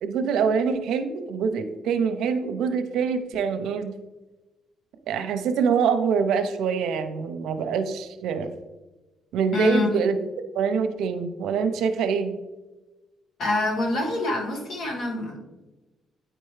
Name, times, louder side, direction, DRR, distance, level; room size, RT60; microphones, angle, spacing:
voice 1, 0.0-3.9 5.1-8.5 9.3-10.2 10.5-12.3, right 6 dB, 80° right, 8 dB, 0.6 m, -25 dB
voice 2, 9.5-10.0 13.4-15.4, left 2 dB, 60° left, 0 dB, 1.6 m, -26 dB
9.0 x 4.5 x 3.2 m, 1.1 s
cardioid pair, 115°, 0 cm